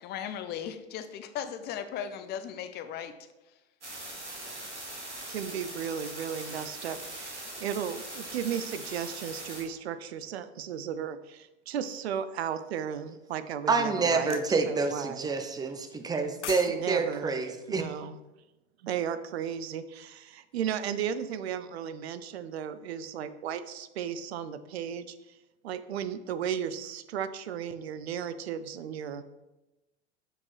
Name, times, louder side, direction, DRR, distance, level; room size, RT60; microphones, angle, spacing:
voice 1, 0.0-3.1 4.4-4.5, left 8 dB, 30° left, 10 dB, 0.6 m, -37 dB
sound 1, 3.8-9.6, right 1 dB, 85° right, 2.0 m, -41 dB
voice 2, 5.3-15.3 16.7-17.3 17.7-18.2 18.8-25.3 25.6-29.3, right 8 dB, 65° right, 13 dB, 0.6 m, -35 dB
voice 3, 13.7-17.8, right 4 dB, 10° right, 7 dB, 0.6 m, -28 dB
sound 2, 14.3-14.5 16.1-16.7 17.0-17.2, left 8 dB, 85° left, 0.5 m, -38 dB
6.6 x 5.8 x 3.2 m, 1.0 s
figure-of-eight pair, 85°, 34 cm